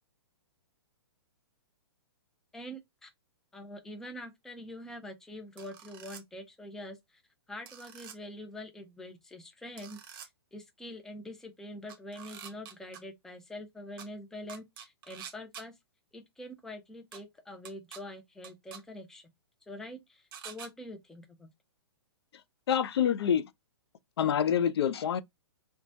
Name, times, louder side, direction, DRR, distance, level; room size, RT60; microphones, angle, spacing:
voice 1, 2.5-3.1 3.5-7.2 7.5-15.7 16.1-19.3 19.7-21.5, left 1 dB, 5° left, 0.4 m, -45 dB
sound 1, 5.6-6.2 7.7-8.2 9.8-10.3 11.9-13.0 14.0-14.1 14.5-15.6 17.1-17.2 17.6-18.0 18.4-18.8 20.3-20.7, right 8 dB, 55° right, 0.7 m, -46 dB
voice 2, 22.7-23.5 24.2-25.2, left 8 dB, 65° left, 0.4 m, -26 dB
3.0 x 2.2 x 2.5 m
hypercardioid pair, 130°, 14 cm